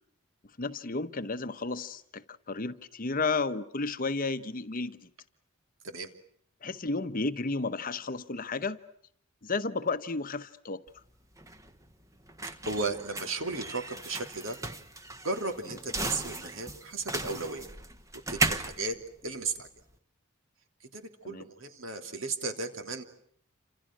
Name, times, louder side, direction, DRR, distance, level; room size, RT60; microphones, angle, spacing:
voice 1, 0.6-5.0 6.6-8.8 9.4-10.8 15.7-15.8 21.2-21.5, left 3 dB, 40° left, 1.1 m, -32 dB
sound 1, 10.9-19.9, right 2 dB, 15° right, 1.4 m, -36 dB
voice 2, 12.6-14.6 15.2-17.7 18.3-19.0 19.2-19.7 20.9-23.0, right 3 dB, 60° right, 3.2 m, -35 dB
29.5 x 27.0 x 6.1 m
head